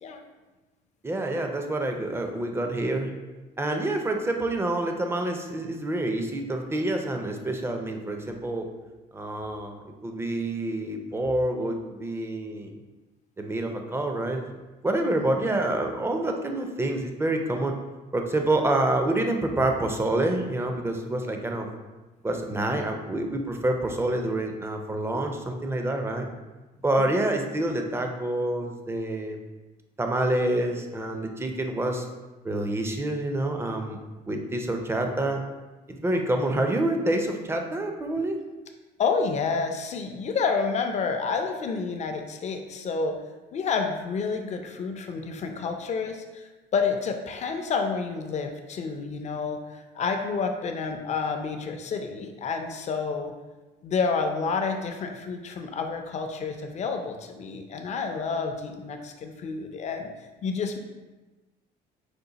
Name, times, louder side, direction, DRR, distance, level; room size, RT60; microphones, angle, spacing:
voice 1, 1.0-3.1 3.6-8.7 9.1-12.8 13.4-14.5 14.8-17.7 18.1-21.7 22.2-26.3 26.8-29.4 30.0-32.1 32.4-34.0 34.3-35.4 35.9-38.4, right 1 dB, 15° right, 4 dB, 0.5 m, -27 dB
voice 2, 39.0-43.2 43.5-53.3 53.8-60.1 60.4-60.8, left 5 dB, 40° left, 5 dB, 0.5 m, -29 dB
5.1 x 2.1 x 3.9 m, 1.2 s
cardioid pair, 110°, 17 cm